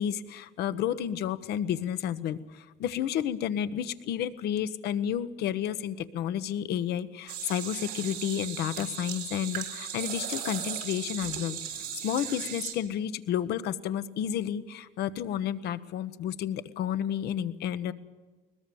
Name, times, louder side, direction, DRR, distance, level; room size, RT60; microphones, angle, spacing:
voice 1, 0.0-11.6 12.0-17.9, left 10 dB, 75° left, 13 dB, 1.1 m, -31 dB
sound 1, 7.3-12.7, right 9 dB, 85° right, 4.4 m, -37 dB
21.5 x 20.5 x 7.1 m, 1.3 s
cardioid pair, 110°, 17 cm